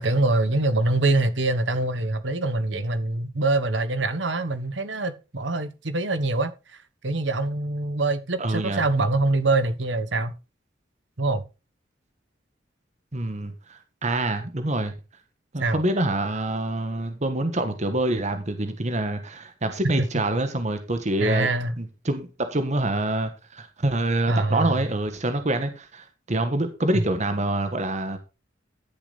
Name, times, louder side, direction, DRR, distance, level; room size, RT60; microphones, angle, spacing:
voice 1, 0.0-6.5 7.0-10.3 11.2-11.4 15.6-15.8 21.2-21.7 24.3-24.9 26.9-27.0, right 2 dB, 75° right, 1.3 m, -24 dB
voice 2, 8.4-8.8 13.1-14.9 15.5-21.5 21.8-28.2, right 1 dB, 40° right, 1.4 m, -26 dB
11.5 x 7.1 x 4.1 m
head